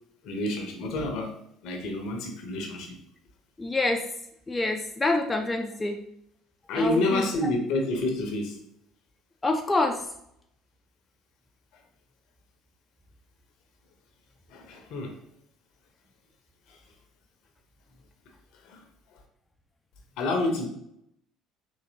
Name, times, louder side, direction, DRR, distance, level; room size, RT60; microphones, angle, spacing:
voice 1, 0.2-1.3 1.6-3.0 6.7-8.6 14.5-15.2 16.7-16.8 18.6-19.2 20.2-20.7, left 2 dB, 60° left, 3 dB, 0.7 m, -29 dB
voice 2, 3.6-4.0 4.5-6.0 6.7-7.2 9.4-10.0, left 2 dB, 20° left, 4 dB, 0.4 m, -26 dB
3.8 x 2.8 x 2.7 m, 0.75 s
figure-of-eight pair, 60°, 0 cm